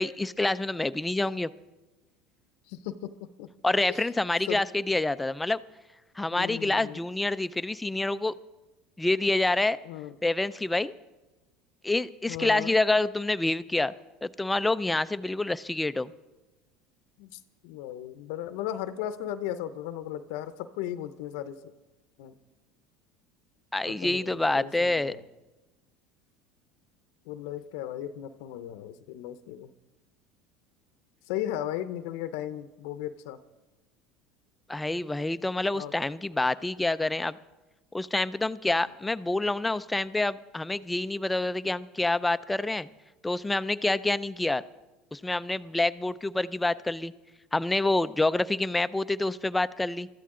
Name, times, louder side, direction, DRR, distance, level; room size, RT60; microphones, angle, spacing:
voice 1, 0.0-1.5 3.6-5.6 6.2-8.3 9.0-9.8 10.2-10.9 11.8-13.9 14.2-16.1 23.7-25.2 34.7-37.4 37.9-42.9 43.2-44.6 45.1-47.1 47.5-50.1, left 2 dB, 10° left, 15 dB, 0.4 m, -27 dB
voice 2, 2.7-3.5 3.9-4.0 4.5-4.6 6.3-7.0 9.8-10.1 12.3-12.8 17.2-21.6 22.2-22.3 23.9-25.2 27.3-29.7 31.3-33.4 35.7-35.9, left 11 dB, 75° left, 12 dB, 0.7 m, -36 dB
23.0 x 13.5 x 3.8 m, 1.1 s
supercardioid pair, 110°, 0 cm